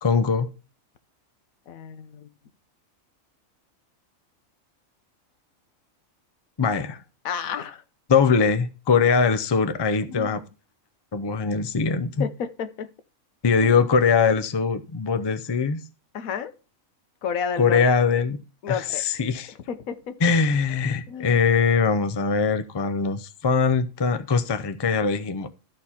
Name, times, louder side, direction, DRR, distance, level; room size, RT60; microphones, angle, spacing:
voice 1, 0.0-0.5 6.6-7.0 8.1-10.4 11.1-12.3 13.4-15.8 17.6-18.4 18.7-19.5 20.2-25.5, left 5 dB, 30° left, 0.5 m, -22 dB
voice 2, 1.7-2.3 7.2-7.8 10.1-10.4 12.2-12.9 13.6-13.7 16.1-16.5 17.2-17.8 18.6-19.0 19.7-20.0 21.1-21.4, left 7 dB, 85° left, 1.3 m, -31 dB
13.0 x 4.5 x 4.2 m
omnidirectional pair, 1.4 m